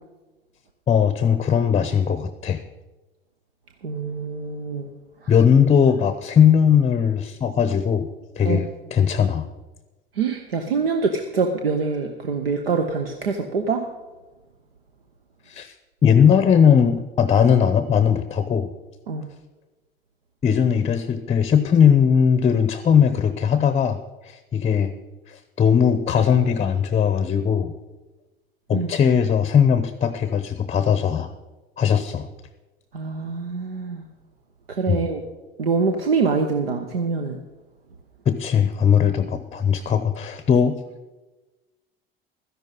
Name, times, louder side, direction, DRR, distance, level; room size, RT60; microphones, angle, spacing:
voice 1, 0.9-2.6 5.3-8.1 8.4-9.5 15.5-15.7 16.0-18.7 20.4-24.0 24.2-24.9 25.3-27.7 28.7-31.3 31.8-32.3 34.9-35.0 38.3-40.8, left 7 dB, 20° left, 12 dB, 0.7 m, -19 dB
voice 2, 3.8-4.9 5.2-5.3 8.4-8.6 10.2-13.9 19.1-19.3 28.7-28.9 32.9-34.0 34.7-35.2 35.6-37.4, right 4 dB, 80° right, 5 dB, 0.8 m, -24 dB
12.5 x 10.5 x 5.6 m, 1.2 s
figure-of-eight pair, 65°, 29 cm